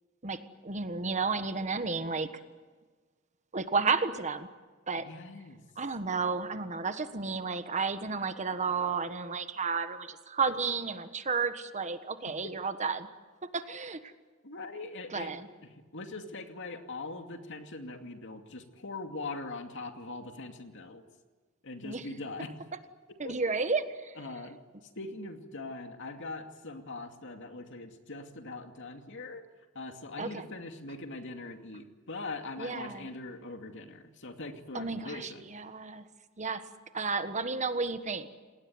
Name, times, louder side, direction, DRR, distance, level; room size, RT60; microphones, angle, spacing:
voice 1, 0.2-2.3 3.5-4.5 4.9-5.1 5.8-13.1 13.5-14.0 15.1-15.5 21.8-22.0 23.2-24.1 30.2-30.4 32.6-33.1 34.7-36.0 36.4-36.6 36.9-38.3, right 4 dB, 35° right, 10 dB, 1.4 m, -32 dB
voice 2, 5.0-5.6 12.3-12.6 14.4-15.3 15.6-21.0 21.6-22.5 23.1-23.4 24.2-24.6 25.0-29.4 29.7-35.5, left 3 dB, 65° left, 5 dB, 2.5 m, -42 dB
28.0 x 19.5 x 9.6 m, 1.4 s
head